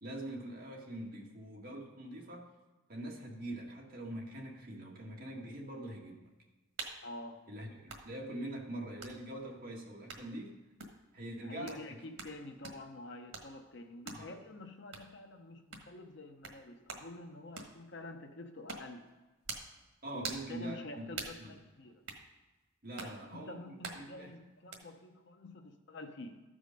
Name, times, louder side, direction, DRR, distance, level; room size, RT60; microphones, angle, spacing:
voice 1, 0.0-2.5 2.9-6.3 7.5-10.6 11.1-12.0 14.1-14.3 20.0-21.1 21.4-21.5 22.8-24.3, right 1 dB, 50° right, -1 dB, 1.8 m, -44 dB
sound 1, 6.8-7.0 7.9-8.1 9.0-9.2 10.1-10.3 10.8-11.0 11.7-11.8 12.2-12.4 12.6-12.8 13.3-13.5 14.1-14.3 14.9-15.1 15.7-15.9 16.4-16.6 16.9-17.1 17.6-17.8 18.7-18.9 19.5-19.7 20.2-20.5 21.1-21.4 22.1-22.2 23.0-23.2 23.8-24.1 24.7-24.8, right 4 dB, 90° right, 1.4 m, -43 dB
voice 2, 7.0-7.4 11.4-19.1 20.1-22.0 23.0-26.4, left 2 dB, 65° left, 5 dB, 0.8 m, -48 dB
13.5 x 5.0 x 5.2 m, 1.2 s
head